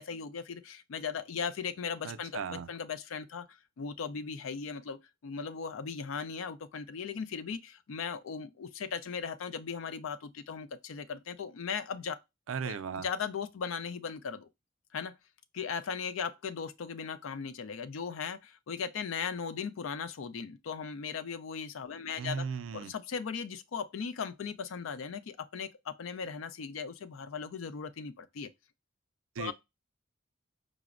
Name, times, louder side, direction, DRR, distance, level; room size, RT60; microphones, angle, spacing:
voice 1, 0.0-3.5 3.8-12.2 12.6-14.5 14.9-15.1 15.5-22.4 22.7-28.5 29.4-29.5, left 6 dB, 85° left, 0.4 m, -38 dB
voice 2, 2.0-2.7 12.5-13.1 22.2-22.9 29.4-29.5, right 6 dB, 85° right, 0.4 m, -36 dB
4.9 x 2.0 x 2.4 m
head